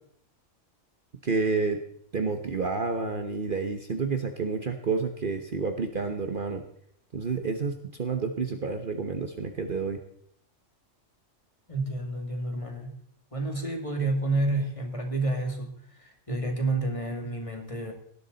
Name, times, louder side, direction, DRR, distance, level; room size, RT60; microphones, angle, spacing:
voice 1, 1.2-1.8 2.1-6.6 7.1-10.0, right 4 dB, 45° right, 6 dB, 1.2 m, -29 dB
voice 2, 11.7-13.0 13.3-17.9, right 2 dB, 25° left, 3 dB, 2.4 m, -30 dB
18.0 x 12.0 x 4.0 m, 0.65 s
omnidirectional pair, 1.4 m